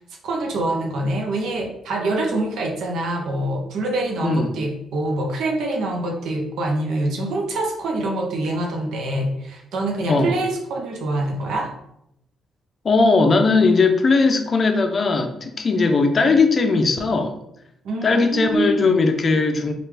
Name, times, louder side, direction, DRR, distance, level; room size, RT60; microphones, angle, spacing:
voice 1, 0.2-11.7 17.8-19.0, right 2 dB, 75° right, 2 dB, 0.7 m, -25 dB
voice 2, 4.2-4.6 10.1-10.3 12.8-17.4 18.0-19.7, left 3 dB, 40° left, 6 dB, 0.5 m, -18 dB
3.2 x 2.4 x 3.3 m, 0.78 s
cardioid pair, 90°, 0 cm